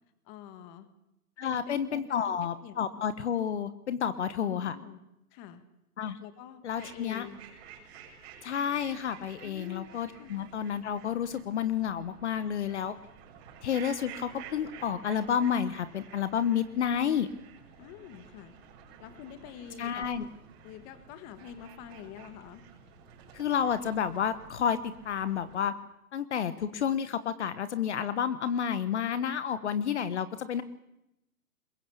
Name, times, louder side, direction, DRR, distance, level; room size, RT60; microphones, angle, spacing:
voice 1, 0.3-0.9 1.4-2.9 4.5-5.0 5.3-5.6 6.2-7.4 9.4-10.4 17.8-18.5 19.0-20.1 20.6-22.6, left 9 dB, 20° left, 12 dB, 1.5 m, -47 dB
voice 2, 1.4-4.8 6.0-6.2 6.6-7.3 8.4-12.9 13.6-17.3 19.8-20.2 23.3-24.8 25.0-25.7 26.1-30.6, left 8 dB, 50° left, 14 dB, 1.2 m, -30 dB
sound 1, 6.7-25.6, right 7 dB, 25° right, 7.1 m, -51 dB
22.0 x 21.5 x 8.5 m, 0.86 s
hypercardioid pair, 155°, 45 cm